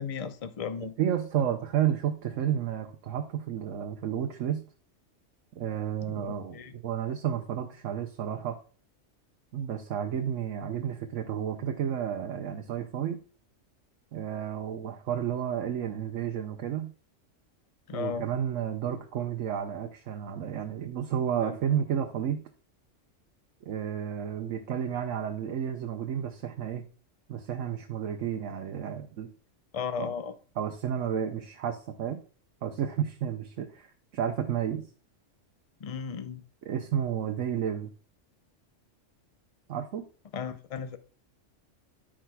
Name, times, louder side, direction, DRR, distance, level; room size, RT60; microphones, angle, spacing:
voice 1, 0.0-0.9 6.0-6.7 17.9-18.3 21.4-21.5 29.7-30.3 35.8-36.4 40.3-41.0, left 6 dB, 40° left, 0.6 m, -35 dB
voice 2, 1.0-4.6 5.6-8.6 9.5-13.2 14.1-16.9 17.9-22.4 23.7-26.8 27.3-29.3 30.0-30.1 30.6-32.2 32.6-34.8 36.6-37.9 39.7-40.1, right 9 dB, 85° right, 1.1 m, -31 dB
13.5 x 5.0 x 2.2 m
omnidirectional pair, 1.3 m